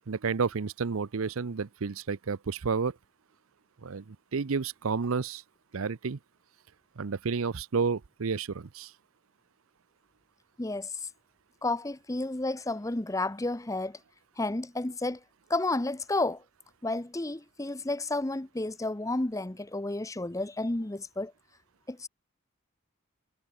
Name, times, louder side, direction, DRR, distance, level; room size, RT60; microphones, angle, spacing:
voice 1, 0.1-3.0 3.8-5.4 5.7-6.2 7.0-8.9, right 5 dB, 85° right, 0.6 m, -31 dB
voice 2, 10.6-11.1 11.6-14.0 14.4-15.2 15.5-16.4 16.8-21.3 21.9-22.1, left 2 dB, 15° left, 0.7 m, -31 dB
head